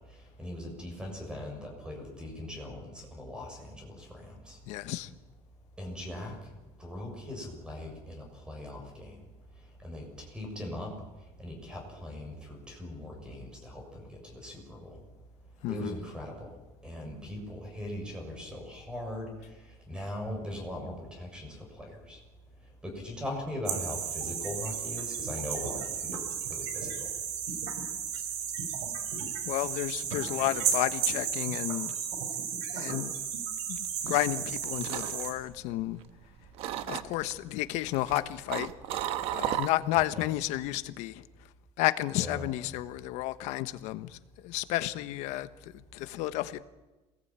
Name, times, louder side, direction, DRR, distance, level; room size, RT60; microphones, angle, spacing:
voice 1, 0.4-4.6 5.8-6.3 6.8-9.1 9.8-10.9 11.4-15.0 15.7-16.5 16.8-19.3 19.9-22.2 22.8-26.2 26.5-27.1 40.2-40.3 42.1-42.5, left 1 dB, 5° right, 6.7 m, -40 dB
voice 2, 4.7-5.1 15.6-15.9 29.4-31.9 32.7-33.1 33.7-36.0 36.9-38.7 39.3-41.2 41.8-44.2 44.4-46.6, left 16 dB, 70° left, 1.3 m, -32 dB
sound 1, 23.7-35.3, right 7 dB, 75° right, 5.5 m, -34 dB
sound 2, 34.4-36.2 36.6-37.3 37.9-40.1 40.4-40.8, right 12 dB, 55° right, 1.2 m, -34 dB
27.0 x 20.0 x 9.0 m
cardioid pair, 170°, 12 cm